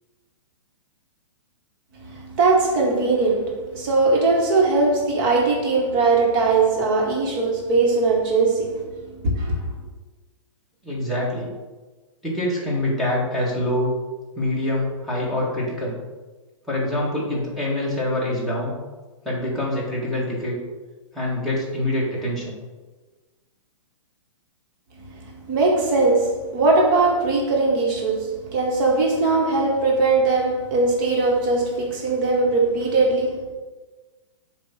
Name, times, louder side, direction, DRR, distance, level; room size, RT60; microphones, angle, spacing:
voice 1, 2.0-9.7 25.2-33.5, right 3 dB, 40° right, 2.1 m, -20 dB
voice 2, 10.8-11.5 12.2-13.9 14.4-16.0 16.7-18.8 19.2-20.6 21.1-22.6, left 1 dB, ahead, 1.9 m, -25 dB
7.4 x 3.3 x 6.0 m
hypercardioid pair, 150°, 17 cm